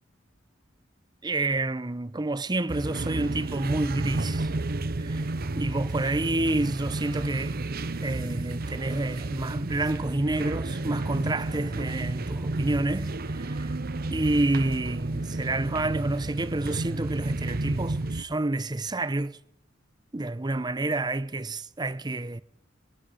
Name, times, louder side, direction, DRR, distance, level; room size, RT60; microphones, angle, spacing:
voice 1, 1.2-4.5 5.0-5.3 5.6-7.6 8.0-13.8 14.1-19.4 20.1-22.4, right 2 dB, 20° right, 0.7 m, -29 dB
sound 1, 2.7-18.2, right 2 dB, 50° right, 0.8 m, -31 dB
21.5 x 12.5 x 9.7 m
head